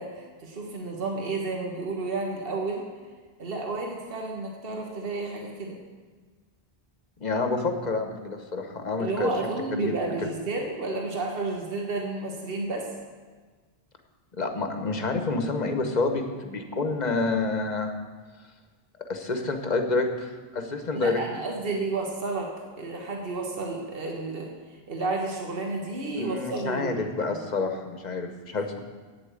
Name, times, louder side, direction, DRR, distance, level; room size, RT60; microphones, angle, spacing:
voice 1, 0.0-2.8 3.4-5.8 9.0-12.9 20.9-22.5 22.8-24.5 24.9-27.4, right 3 dB, 65° right, 0 dB, 1.6 m, -31 dB
voice 2, 7.2-9.3 9.8-9.9 10.2-10.3 14.4-17.9 19.0-21.2 26.1-28.8, left 3 dB, 45° left, 5 dB, 1.2 m, -28 dB
8.6 x 8.4 x 8.2 m, 1.4 s
omnidirectional pair, 1.0 m